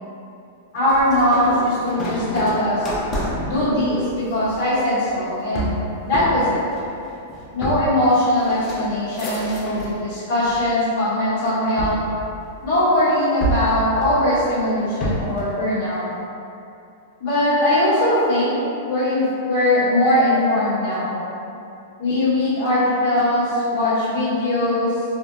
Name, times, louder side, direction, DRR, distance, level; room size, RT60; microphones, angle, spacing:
voice 1, 0.7-2.9 3.5-5.7 6.0-6.6 7.5-12.0 12.6-16.0 17.2-18.5 18.9-21.2 22.0-25.0, left 1 dB, 35° left, -13 dB, 0.8 m, -20 dB
sound 1, 0.9-10.0 10.4-11.1 11.8-12.9 13.4-15.5, right 1 dB, 20° left, 0.3 m, -29 dB
2.7 x 2.1 x 2.3 m, 2.6 s
supercardioid pair, 175°, 0 cm